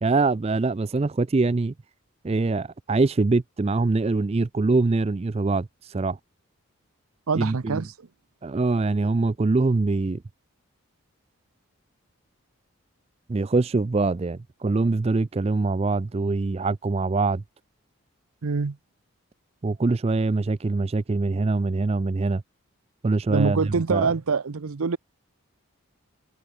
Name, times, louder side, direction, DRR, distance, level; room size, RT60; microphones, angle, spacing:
voice 1, 0.0-1.7 2.2-6.2 7.3-7.8 8.4-10.2 13.3-17.4 19.6-22.4 23.0-24.1, right 3 dB, 25° right, 0.4 m, -24 dB
voice 2, 7.3-7.9 18.4-18.8 23.3-25.0, right 4 dB, 80° right, 0.7 m, -25 dB
head